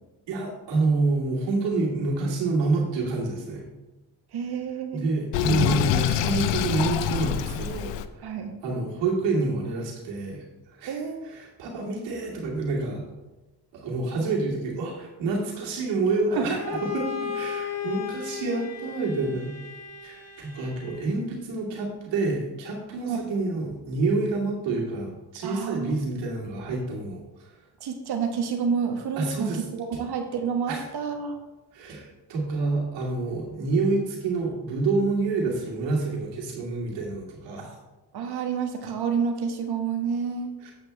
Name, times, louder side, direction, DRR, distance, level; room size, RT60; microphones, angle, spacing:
voice 1, 0.3-3.6 4.9-8.3 8.6-10.4 10.8-13.1 13.7-16.6 16.9-19.5 20.0-27.5 29.2-29.6 30.7-30.9 31.7-37.7 40.6-40.7, right 3 dB, 90° right, -2 dB, 2.4 m, -28 dB
voice 2, 4.3-5.1 8.2-8.5 10.9-11.2 16.3-16.8 23.1-23.2 25.4-26.0 27.8-31.4 38.1-40.5, right 6 dB, 65° right, 4 dB, 1.5 m, -29 dB
Sink (filling or washing), 5.3-8.1, left 10 dB, 90° left, 0.6 m, -25 dB
Bowed string instrument, 16.5-21.3, left 7 dB, 35° left, 1.3 m, -35 dB
8.1 x 7.9 x 3.4 m, 1.1 s
cardioid pair, 75°, 42 cm